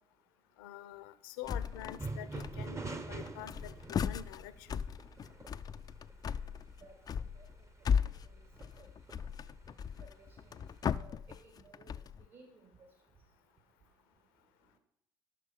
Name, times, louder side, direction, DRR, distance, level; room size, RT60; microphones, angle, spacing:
voice 1, 0.6-4.8, left 11 dB, 70° left, 14 dB, 0.7 m, -47 dB
sound 1, 1.4-11.0, right 3 dB, 25° right, 0.9 m, -46 dB
sound 2, 1.5-2.1 2.3-2.9 3.3-12.3, left 7 dB, 35° left, 0.4 m, -37 dB
voice 2, 10.0-11.1 11.4-11.9 12.3-12.6, right 3 dB, 50° right, 3 dB, 2.2 m, -58 dB
12.0 x 6.3 x 5.3 m, 0.77 s
hypercardioid pair, 55°, 12 cm